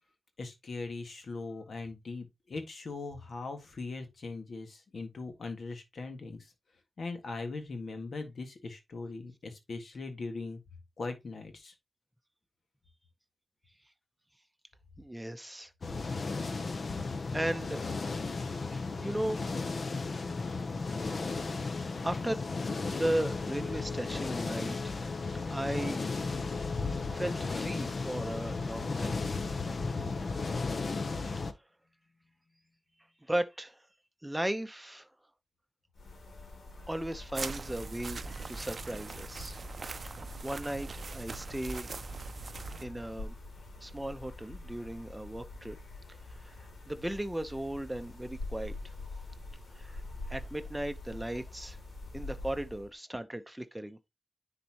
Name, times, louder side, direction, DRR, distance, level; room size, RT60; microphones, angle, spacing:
voice 1, 0.4-6.5 7.0-10.6 11.0-11.7, left 3 dB, 65° left, 1.7 m, -40 dB
voice 2, 15.0-15.7 17.3-17.8 18.7-19.4 22.0-22.5 22.9-24.9 25.5-26.0 27.1-29.2 33.3-33.8 34.2-35.1 36.9-39.6 40.4-41.9 42.8-43.3 43.8-45.8 46.3-48.8 49.7-50.0 50.3-51.8 52.1-54.0, right 1 dB, 10° right, 0.7 m, -36 dB
sound 1, 15.8-31.5, left 3 dB, 50° left, 0.7 m, -34 dB
sound 2, 35.9-52.9, left 2 dB, 90° left, 2.7 m, -45 dB
sound 3, 37.3-42.8, right 4 dB, 50° right, 0.5 m, -41 dB
9.9 x 4.1 x 2.9 m
wide cardioid pair, 130°, 0 cm